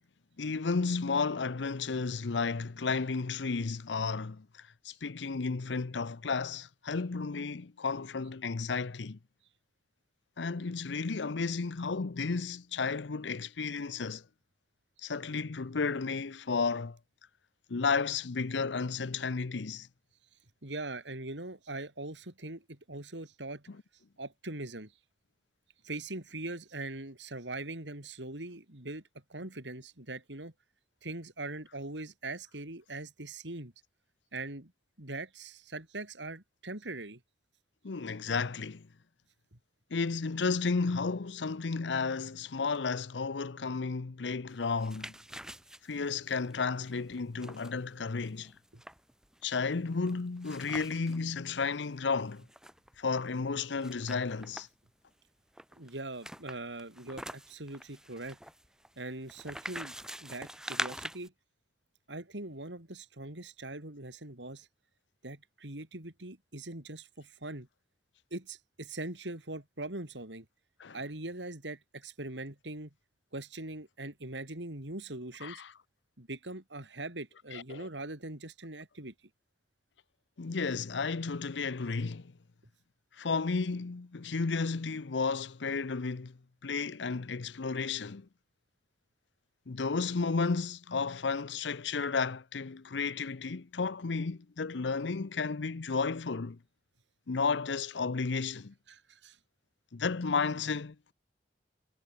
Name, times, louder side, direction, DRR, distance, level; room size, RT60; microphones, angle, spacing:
voice 1, 0.4-9.2 10.4-14.2 15.0-17.0 17.7-19.9 23.7-23.8 37.8-38.9 39.9-45.1 45.8-48.5 49.4-52.4 53.0-54.7 70.8-71.0 75.4-75.7 77.5-77.9 80.4-82.3 83.1-88.3 89.7-96.6 97.3-98.7 99.9-101.1, left 4 dB, 85° left, 0.7 m, -33 dB
voice 2, 20.6-23.6 24.2-24.9 25.8-29.0 29.3-30.5 31.0-33.7 34.3-34.7 35.0-37.2 39.5-39.6 48.7-48.8 55.8-58.4 59.0-59.9 60.2-61.3 62.1-64.7 65.2-67.7 68.3-70.5 70.9-72.9 73.3-75.6 76.2-79.1 98.9-99.4, right 2 dB, 80° right, 4.2 m, -41 dB
sound 1, 44.5-51.2 51.6-51.7 51.9-53.2 53.8-54.9 55.5-61.3, right 1 dB, 5° right, 4.2 m, -44 dB
head